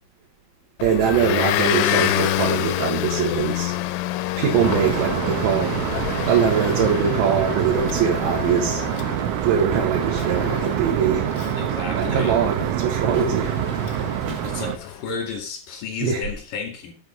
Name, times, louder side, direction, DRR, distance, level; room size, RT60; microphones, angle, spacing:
Motor vehicle (road) / Engine, 0.8-15.0, left 14 dB, 85° left, 2.9 m, -28 dB
voice 1, 0.8-3.7 4.4-5.8 6.3-8.8 9.4-11.3 12.0-13.5 16.0-16.2, right 7 dB, 70° right, 3.7 m, -22 dB
sound 1, 4.6-14.8, right 12 dB, 85° right, 3.3 m, -26 dB
Walk footsteps, 9.7-10.0 10.6-11.0 12.0-12.3 13.1-13.4 14.2-14.7, right 2 dB, 35° right, 2.4 m, -35 dB
voice 2, 11.5-12.4 14.4-16.9, left 5 dB, 50° left, 3.1 m, -32 dB
7.9 x 7.9 x 5.0 m
omnidirectional pair, 5.8 m